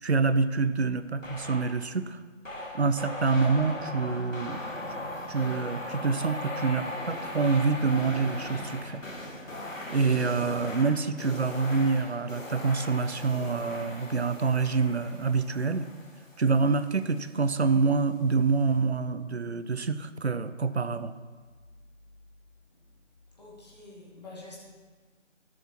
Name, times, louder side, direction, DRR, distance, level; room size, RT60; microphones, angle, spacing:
voice 1, 0.0-2.2 2.7-4.6 5.3-9.0 9.9-15.9 16.4-21.1, right 4 dB, 60° right, 12 dB, 0.6 m, -26 dB
sound 1, 1.2-1.9 2.4-17.1, left 1 dB, 85° left, 2.0 m, -39 dB
voice 2, 23.4-24.6, left 2 dB, 35° left, -5 dB, 2.6 m, -47 dB
17.5 x 7.8 x 3.0 m, 1.4 s
figure-of-eight pair, 170°, 38 cm